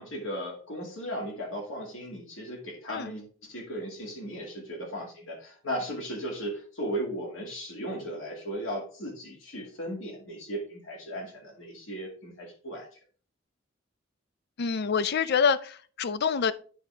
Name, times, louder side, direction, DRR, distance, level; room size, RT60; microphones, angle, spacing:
voice 1, 0.0-12.9, equal, 90° left, 2.4 m, -36 dB
voice 2, 14.6-16.5, left 6 dB, 55° left, 0.5 m, -26 dB
9.6 x 3.9 x 3.6 m
head